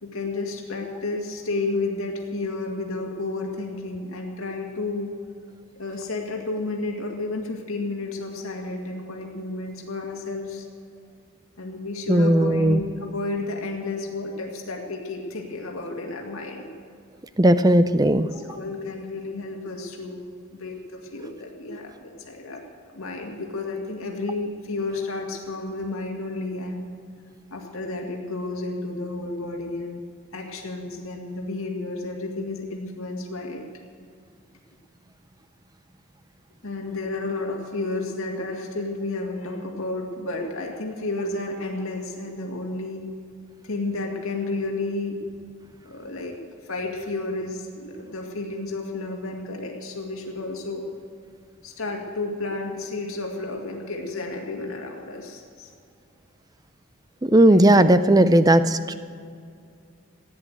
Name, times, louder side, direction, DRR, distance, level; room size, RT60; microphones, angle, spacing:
voice 1, 0.0-5.1 5.8-10.7 11.6-16.7 18.2-20.2 20.5-22.6 22.9-26.9 27.5-30.0 30.3-33.6 36.6-43.1 43.6-45.2 45.8-50.8 51.6-55.7 57.5-57.6, left 2 dB, 75° left, 1 dB, 2.2 m, -31 dB
voice 2, 12.1-12.8 17.4-18.3 57.2-58.9, right 1 dB, 15° right, 12 dB, 0.5 m, -16 dB
16.0 x 9.9 x 8.1 m, 2.3 s
head